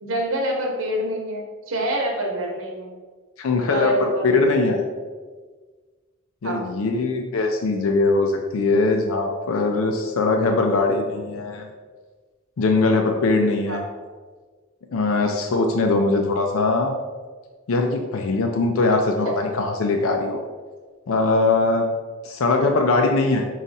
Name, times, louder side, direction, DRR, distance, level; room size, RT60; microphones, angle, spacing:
voice 1, 0.0-2.9 3.7-4.7 6.4-6.6 13.7-13.9 19.2-19.4, right 1 dB, 75° right, 1 dB, 0.8 m, -27 dB
voice 2, 3.4-4.8 6.4-11.7 12.6-13.8 14.9-16.9 17.7-20.4 21.1-21.9 22.2-23.4, left 3 dB, 80° left, 3 dB, 0.4 m, -21 dB
5.2 x 2.4 x 4.0 m, 1.4 s
head